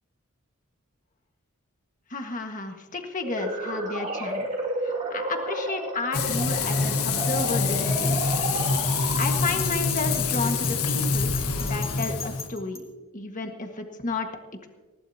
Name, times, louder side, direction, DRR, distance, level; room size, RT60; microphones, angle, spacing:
voice 1, 2.1-4.4 4.8-8.4 9.2-12.8 13.1-14.3, left 3 dB, 35° left, 4 dB, 1.6 m, -32 dB
sound 1, 3.2-9.7, right 2 dB, 35° right, 2.4 m, -32 dB
Frying (food), 6.1-12.5, left 4 dB, 80° left, 1.4 m, -26 dB
Bell, 9.2-12.8, left 4 dB, 15° left, 2.5 m, -38 dB
20.5 x 18.0 x 2.9 m, 1.2 s
head